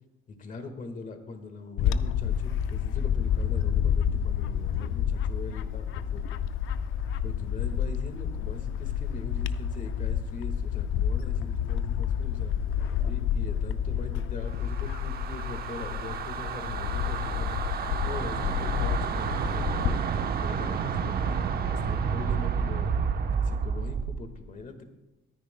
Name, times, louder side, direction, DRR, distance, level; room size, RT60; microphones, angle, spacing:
voice 1, 0.3-6.4 7.2-12.6 13.0-17.6 18.0-20.0 20.4-23.0 23.4-24.8, left 3 dB, 40° left, 7 dB, 1.6 m, -42 dB
Bird / Wind, 1.8-20.0, left 8 dB, 75° left, 0.5 m, -29 dB
sound 1, 14.5-24.2, right 6 dB, 50° right, 0.9 m, -30 dB
23.0 x 10.0 x 2.2 m, 1.1 s
cardioid pair, 120°, 21 cm